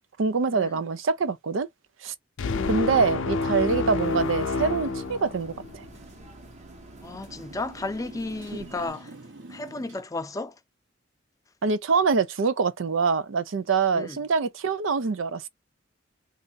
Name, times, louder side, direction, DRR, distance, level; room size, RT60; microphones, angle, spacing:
voice 1, 0.2-1.7 2.0-2.1 2.7-5.5 11.6-15.5, right 5 dB, 85° right, 0.5 m, -25 dB
sound 1, 2.4-5.9, left 3 dB, 85° left, 0.5 m, -28 dB
sound 2, 3.5-8.9, right 2 dB, 35° right, 0.8 m, -49 dB
Motorcycle, 4.5-10.0, right 2 dB, 65° right, 1.0 m, -47 dB
voice 2, 7.0-9.1 9.5-10.6 13.9-14.2, left 2 dB, 15° left, 0.4 m, -34 dB
2.5 x 2.5 x 3.9 m
head